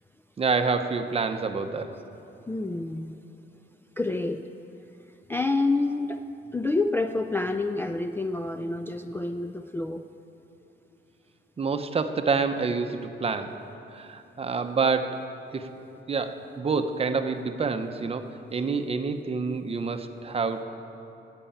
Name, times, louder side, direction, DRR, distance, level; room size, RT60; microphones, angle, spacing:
voice 1, 0.4-1.9 11.6-13.5 13.9-15.2 15.5-15.7 16.1-20.6, right 4 dB, 30° right, 8 dB, 0.7 m, -27 dB
voice 2, 2.5-3.2 4.0-4.4 5.3-6.2 6.5-10.0, left 2 dB, 10° left, 6 dB, 0.3 m, -28 dB
11.0 x 8.2 x 8.7 m, 2.9 s
wide cardioid pair, 145°, 20 cm